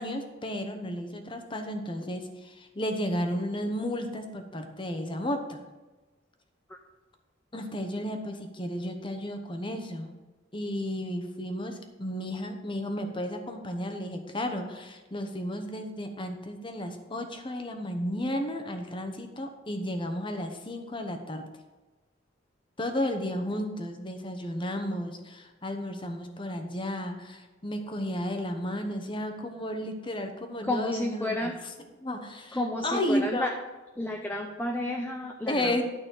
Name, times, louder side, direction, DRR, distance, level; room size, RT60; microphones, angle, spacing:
voice 1, 0.0-5.7 7.5-10.1 10.5-21.5 22.8-31.5 32.0-33.5 35.5-35.8, left 1 dB, 25° left, 6 dB, 1.0 m, -33 dB
voice 2, 30.6-31.5 32.5-33.5 34.0-35.8, left 1 dB, 10° left, 2 dB, 0.6 m, -31 dB
11.5 x 4.2 x 6.5 m, 1.2 s
head